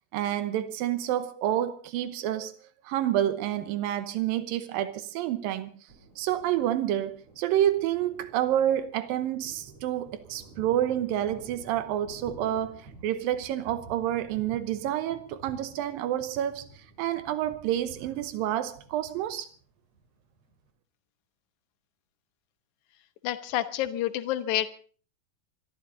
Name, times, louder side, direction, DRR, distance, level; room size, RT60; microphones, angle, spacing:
voice 1, 0.1-2.5 2.8-5.8 6.2-16.7 17.0-19.5, right 11 dB, 90° right, 2.8 m, -28 dB
Thunder, 5.9-20.7, right 4 dB, 50° right, 4.8 m, -51 dB
voice 2, 23.2-24.7, left 13 dB, 70° left, 2.3 m, -28 dB
26.5 x 13.0 x 3.9 m
omnidirectional pair, 4.0 m